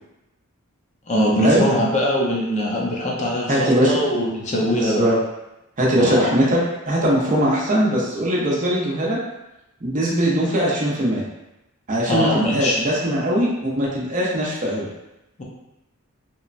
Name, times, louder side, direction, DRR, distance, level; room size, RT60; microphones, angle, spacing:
voice 1, 1.1-5.0 6.0-6.3 12.1-12.8 15.4-15.5, left 1 dB, 35° left, -3 dB, 0.5 m, -22 dB
voice 2, 3.5-3.9 4.7-5.2 5.8-6.6 6.9-9.2 9.8-11.2 11.9-14.9, equal, 35° right, -4 dB, 0.6 m, -20 dB
2.9 x 2.1 x 2.4 m, 0.93 s
head